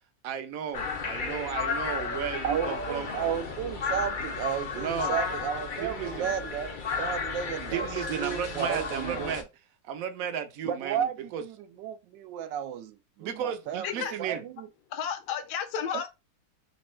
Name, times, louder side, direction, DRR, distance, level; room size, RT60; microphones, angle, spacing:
voice 1, 0.2-3.2 4.7-5.2 5.8-6.3 7.7-9.5 9.8-11.4 13.2-14.4, right 8 dB, 65° right, 0.9 m, -34 dB
sound 1, 0.7-9.4, left 4 dB, 55° left, 0.5 m, -33 dB
voice 2, 2.4-9.3 10.7-14.7, right 9 dB, 85° right, 1.3 m, -33 dB
voice 3, 14.9-16.1, left 8 dB, 70° left, 1.2 m, -32 dB
4.2 x 2.2 x 4.3 m
omnidirectional pair, 1.9 m